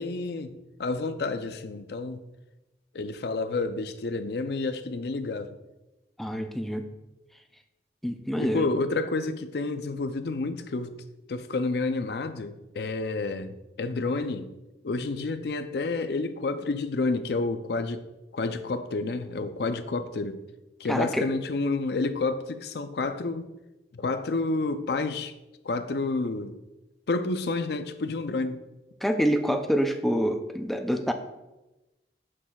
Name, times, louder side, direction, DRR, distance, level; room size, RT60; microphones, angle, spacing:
voice 1, 0.0-2.2 2.9-5.5 8.4-11.0 11.3-14.5 14.8-18.1 18.3-20.4 20.8-23.5 23.9-25.3 25.6-26.6 27.1-28.6, left 3 dB, 60° left, 0.4 m, -29 dB
voice 2, 6.2-6.9 8.0-8.7 20.9-21.3 29.0-31.1, equal, ahead, 0.4 m, -26 dB
7.5 x 6.3 x 2.3 m
head